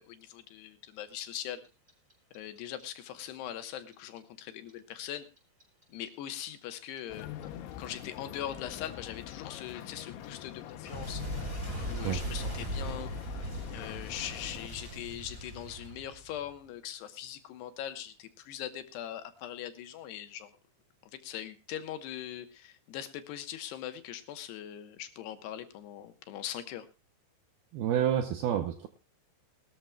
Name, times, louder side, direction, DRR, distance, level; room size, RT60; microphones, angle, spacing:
voice 1, 0.0-1.6 2.3-5.3 5.9-7.3 7.8-11.2 11.8-13.1 13.7-20.5 21.1-26.9, left 11 dB, 75° left, 9 dB, 2.9 m, -41 dB
Clock, 1.2-4.2 4.4-7.4 7.7-16.6, right 1 dB, 15° right, 6.1 m, -39 dB
sound 1, 7.1-14.7, left 11 dB, 90° left, 3.4 m, -44 dB
voice 2, 27.7-28.9, right 10 dB, 80° right, 8 dB, 2.3 m, -29 dB
21.0 x 13.5 x 2.3 m, 0.28 s
omnidirectional pair, 5.3 m